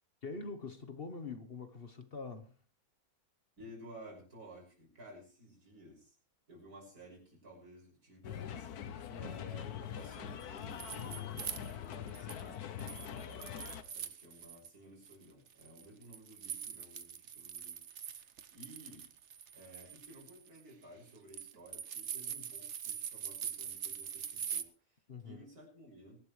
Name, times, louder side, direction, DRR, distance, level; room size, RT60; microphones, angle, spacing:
voice 1, 0.2-2.6 9.1-9.4 25.1-25.5, left 4 dB, 45° left, 1.2 m, -44 dB
voice 2, 3.6-6.2 6.5-17.8 18.1-18.2 18.5-19.1 19.5-26.2, equal, 80° right, 6.6 m, -55 dB
sound 1, 8.2-13.8, left 9 dB, 80° left, 1.4 m, -43 dB
sound 2, 10.4-12.5 12.8-14.7 15.0-24.6, right 8 dB, 55° right, 1.1 m, -43 dB
23.0 x 12.0 x 3.2 m
omnidirectional pair, 1.6 m